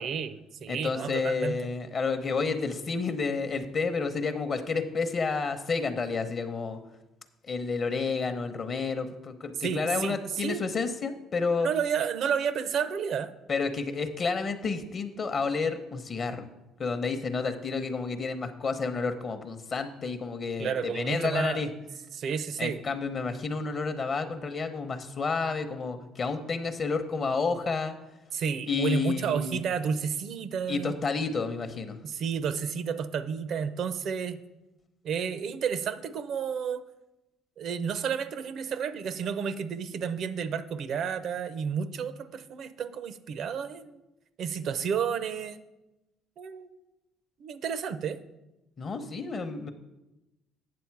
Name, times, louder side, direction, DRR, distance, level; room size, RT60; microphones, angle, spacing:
voice 1, 0.0-1.5 9.6-10.6 11.6-13.3 20.6-21.6 22.1-22.8 28.3-30.9 32.0-34.4 35.0-36.8 37.6-44.0 44.4-45.6 46.4-46.7 47.4-48.2, right 7 dB, 60° right, 13 dB, 0.6 m, -31 dB
voice 2, 0.7-6.8 7.4-11.7 13.5-16.5 16.8-21.7 22.6-27.9 28.7-29.6 30.7-32.0 48.8-49.7, left 4 dB, 40° left, 8 dB, 0.7 m, -30 dB
8.6 x 6.8 x 4.6 m, 0.97 s
cardioid pair, 110°, 0 cm